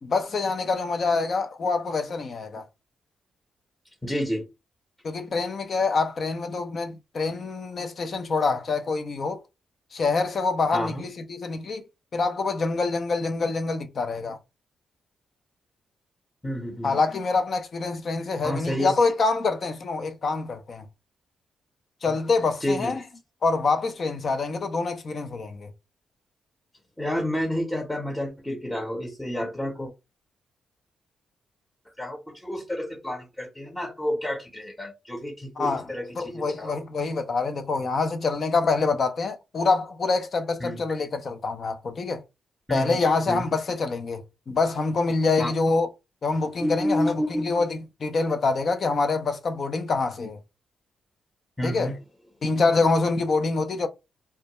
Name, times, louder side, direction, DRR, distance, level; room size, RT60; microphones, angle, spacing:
voice 1, 0.0-2.7 5.0-9.4 9.9-11.8 12.1-14.4 16.8-20.9 22.0-23.0 23.4-25.7 35.6-35.9 36.2-42.2 42.7-45.9 46.2-50.4 51.6-51.9 52.4-53.9, left 3 dB, 55° left, 0.4 m, -26 dB
voice 2, 4.0-4.4 10.7-11.1 16.4-16.9 18.4-18.9 22.1-22.2 22.6-22.9 27.0-29.9 32.0-36.8 40.6-40.8 42.7-43.0 43.3-43.5 45.4-45.5 46.6-47.6 51.6-52.0, equal, 10° left, 0.7 m, -30 dB
2.2 x 2.1 x 2.9 m
cardioid pair, 65°, 0 cm